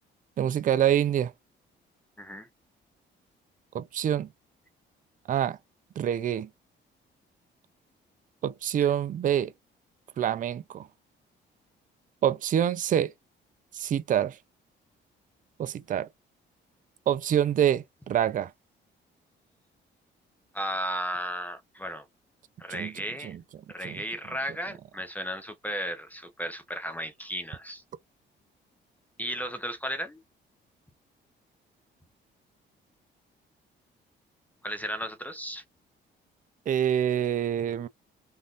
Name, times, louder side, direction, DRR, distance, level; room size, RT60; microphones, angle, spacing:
voice 1, 0.4-1.3 3.7-4.3 5.3-5.6 6.0-6.5 8.4-9.5 10.2-10.9 12.2-13.1 13.7-14.4 15.6-16.1 17.1-18.5 22.7-22.9 23.2-23.4 23.8-24.0 36.7-37.9, right 10 dB, 40° right, 0.4 m, -26 dB
voice 2, 2.2-2.5 20.5-22.0 22.6-23.4 23.7-27.8 29.2-30.2 34.6-35.6, equal, 10° left, 0.6 m, -34 dB
3.6 x 2.5 x 2.4 m
cardioid pair, 110°, 20 cm